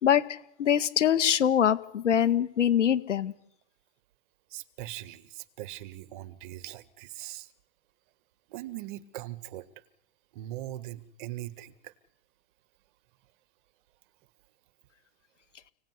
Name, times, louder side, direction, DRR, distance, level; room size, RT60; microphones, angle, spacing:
voice 1, 0.0-3.3, left 9 dB, 90° left, 13 dB, 2.1 m, -24 dB
voice 2, 4.5-7.5 8.5-9.7 10.3-11.9, right 14 dB, 45° right, 15 dB, 1.7 m, -40 dB
30.0 x 18.0 x 9.8 m, 0.76 s
hypercardioid pair, 150°, 35 cm